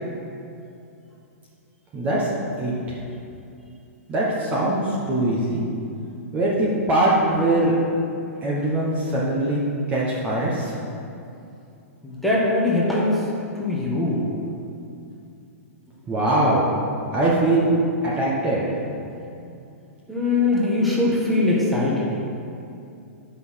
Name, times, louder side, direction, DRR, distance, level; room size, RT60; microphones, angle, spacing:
voice 1, 1.9-2.3 2.6-3.0 4.1-5.6 6.3-7.7 8.4-9.6 9.9-10.7 16.1-16.6 17.1-17.7 18.0-18.6, right 1 dB, 15° right, -5 dB, 1.2 m, -22 dB
voice 2, 12.0-13.2 13.6-14.2 20.1-22.1, left 2 dB, ahead, -6 dB, 1.4 m, -21 dB
9.6 x 5.7 x 6.3 m, 2.6 s
hypercardioid pair, 165°, 8 cm